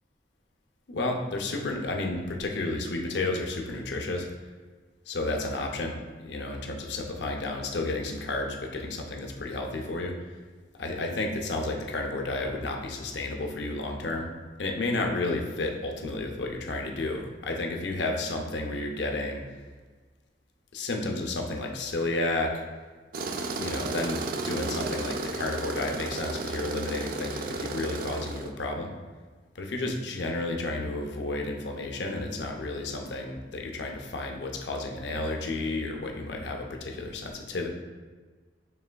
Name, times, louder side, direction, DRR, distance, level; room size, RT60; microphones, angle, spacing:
voice 1, 0.9-4.3 5.1-10.1 10.8-14.3 14.6-19.4 20.7-22.6 23.4-28.9 29.5-37.7, left 2 dB, 75° left, 2 dB, 0.6 m, -31 dB
Tools, 23.1-28.5, right 3 dB, 55° right, 0.3 m, -33 dB
5.5 x 3.3 x 2.2 m, 1.4 s
head